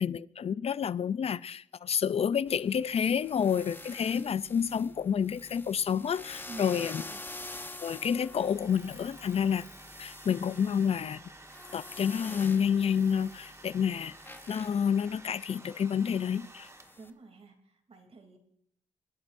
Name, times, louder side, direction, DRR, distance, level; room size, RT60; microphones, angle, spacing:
voice 1, 0.0-7.0 7.8-9.7 10.0-11.2 11.7-14.1 14.5-16.7, left 7 dB, 55° left, 0.5 m, -29 dB
sound 1, 2.5-17.1, left 2 dB, 15° left, 1.1 m, -47 dB
voice 2, 6.9-7.2 17.0-18.4, right 3 dB, 55° right, 3.2 m, -50 dB
Domestic sounds home sounds, 8.0-17.2, right 2 dB, 20° right, 1.5 m, -52 dB
26.0 x 11.0 x 2.6 m
cardioid pair, 75°, 13 cm